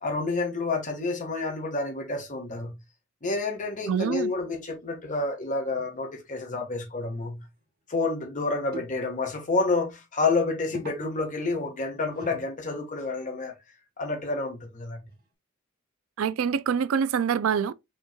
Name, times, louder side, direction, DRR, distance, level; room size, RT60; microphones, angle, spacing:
voice 1, 0.0-2.8 3.2-7.4 7.9-13.5 14.0-15.0, left 3 dB, 40° left, 1.3 m, -29 dB
voice 2, 3.9-4.3 16.2-17.7, right 7 dB, 75° right, 0.4 m, -25 dB
sound 1, 5.8-6.0 6.3-6.4 7.2-7.3 7.6-7.7 8.7-8.9 10.2-13.2 15.1-15.2, equal, 45° right, 1.4 m, -46 dB
5.5 x 3.1 x 2.2 m
head